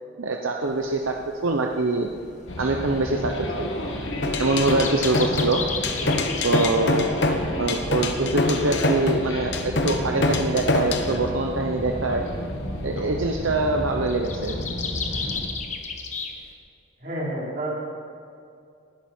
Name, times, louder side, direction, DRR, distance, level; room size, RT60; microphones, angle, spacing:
voice 1, 0.2-1.2 1.4-2.1 2.6-3.7 4.4-5.6 6.4-7.1 7.6-12.2 12.8-14.5, right 2 dB, 85° right, 2 dB, 0.9 m, -24 dB
sound 1, 0.6-16.5, left 5 dB, 35° left, 1.3 m, -37 dB
sound 2, 2.5-15.5, left 1 dB, 75° left, 2.0 m, -32 dB
sound 3, 4.2-11.1, left 2 dB, 60° left, 1.1 m, -25 dB
voice 2, 17.0-17.9, right 1 dB, 45° right, -5 dB, 3.9 m, -29 dB
19.5 x 11.5 x 4.5 m, 2.4 s
head